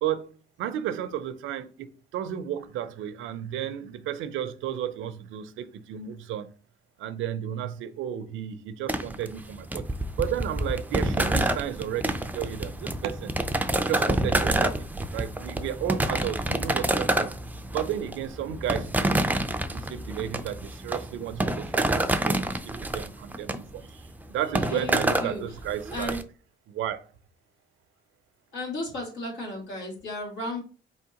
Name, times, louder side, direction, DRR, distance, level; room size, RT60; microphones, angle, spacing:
voice 1, 0.0-6.5 7.0-9.9 10.2-13.3 13.9-14.9 15.1-17.3 17.7-19.3 19.7-22.4 22.8-24.0 24.3-26.2 26.7-27.1, right 10 dB, 80° right, 0.5 m, -33 dB
sound 1, 8.9-26.2, right 1 dB, 10° right, 0.4 m, -28 dB
voice 2, 24.7-25.4 25.9-26.2 28.5-30.6, left 2 dB, 80° left, 2.4 m, -34 dB
4.3 x 3.5 x 2.9 m
cardioid pair, 90°, 20 cm